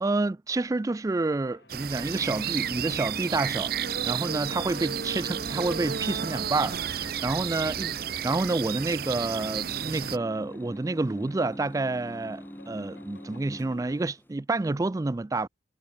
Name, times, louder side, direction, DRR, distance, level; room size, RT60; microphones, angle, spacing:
voice 1, 0.0-7.9 8.2-15.5, right 2 dB, 20° right, 0.3 m, -29 dB
sound 1, 1.4-14.0, left 2 dB, 75° left, 6.7 m, -56 dB
sound 2, 1.7-10.2, right 9 dB, 60° right, 0.6 m, -32 dB
sound 3, 2.0-14.3, equal, 10° left, 3.4 m, -44 dB
head